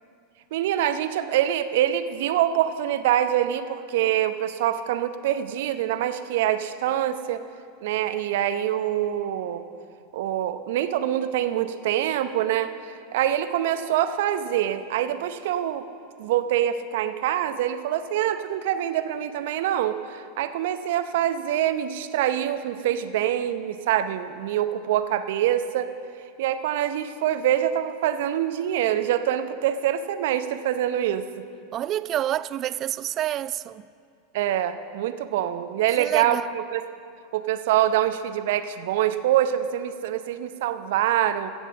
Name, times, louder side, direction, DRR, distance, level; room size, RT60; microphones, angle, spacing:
voice 1, 0.5-7.4 7.8-9.7 10.1-15.8 16.2-25.9 26.4-31.5 34.3-36.8 37.3-41.5, right 11 dB, 65° right, 0.7 m, -25 dB
voice 2, 31.7-33.9 36.0-36.5, right 12 dB, 40° right, 0.3 m, -28 dB
16.0 x 7.2 x 6.9 m
hypercardioid pair, 85°, 0 cm